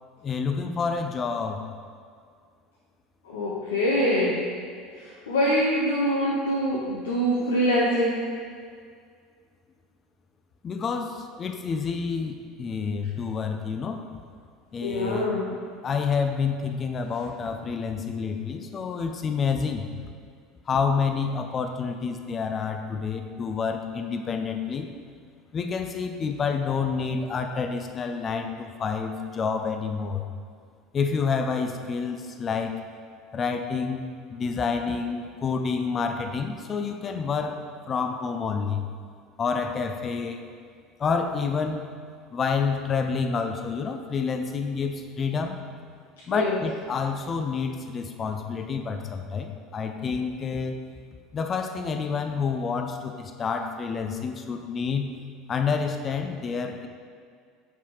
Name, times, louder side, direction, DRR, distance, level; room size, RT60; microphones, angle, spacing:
voice 1, 0.2-1.7 10.6-14.0 14.7-15.3 15.8-19.9 20.7-24.8 25.5-30.2 30.9-32.8 33.3-34.0 34.3-38.9 39.4-40.4 41.0-41.9 42.3-45.6 46.3-50.8 51.3-55.1 55.5-56.9, left 5 dB, 30° left, 6 dB, 0.5 m, -28 dB
voice 2, 3.3-4.4 5.3-8.2 14.8-15.4 46.3-46.6, equal, 70° left, -6 dB, 0.8 m, -24 dB
7.3 x 5.5 x 3.1 m, 2.1 s
figure-of-eight pair, 70°, 0 cm